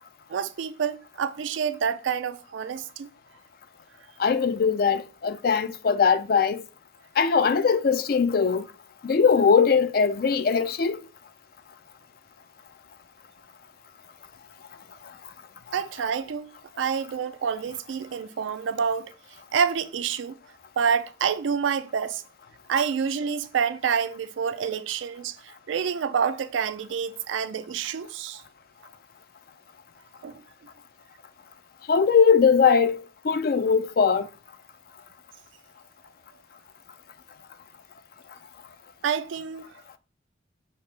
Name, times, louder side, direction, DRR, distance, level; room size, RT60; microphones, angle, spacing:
voice 1, 0.3-3.1 15.7-16.5 16.8-19.1 19.5-20.3 20.8-22.2 22.7-28.4 30.2-30.4 39.0-39.7, right 7 dB, 80° right, 0.4 m, -28 dB
voice 2, 4.2-6.6 7.2-8.7 9.0-11.0 31.9-33.0 33.2-34.3, left 6 dB, 50° left, 0.4 m, -20 dB
5.8 x 2.9 x 3.2 m
head